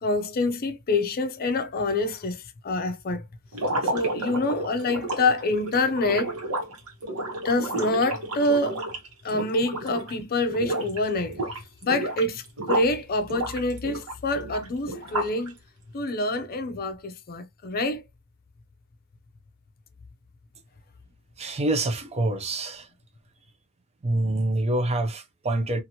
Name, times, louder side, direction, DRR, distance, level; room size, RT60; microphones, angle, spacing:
voice 1, 0.0-3.2 3.9-6.4 7.4-8.8 9.2-11.4 11.8-12.4 12.7-15.6 15.9-18.0, left 2 dB, 45° left, 0.5 m, -26 dB
sound 1, 3.5-10.2 10.5-11.0 11.3-12.9 13.3-15.5, right 1 dB, 80° right, 1.1 m, -31 dB
voice 2, 21.4-22.9 24.0-25.8, right 2 dB, 30° right, 0.5 m, -26 dB
2.8 x 2.5 x 2.7 m
head